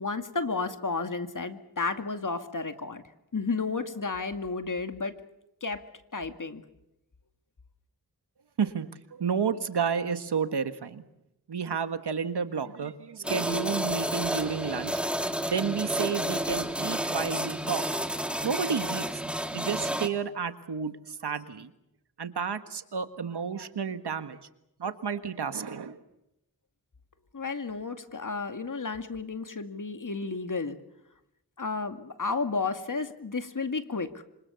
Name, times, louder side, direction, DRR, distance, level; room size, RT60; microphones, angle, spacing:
voice 1, 0.0-3.0 3.3-5.1 5.6-5.8 6.1-6.6 27.3-30.8 31.6-34.2, left 4 dB, 50° left, 8 dB, 2.3 m, -32 dB
voice 2, 8.6-11.0 11.5-15.0 15.4-17.8 18.4-19.0 19.5-21.7 22.2-24.4 24.8-26.0, right 6 dB, 85° right, 10 dB, 1.7 m, -31 dB
sound 1, 13.2-20.1, equal, 5° right, 2.5 m, -31 dB
27.0 x 25.5 x 7.0 m, 0.84 s
cardioid pair, 50°, 39 cm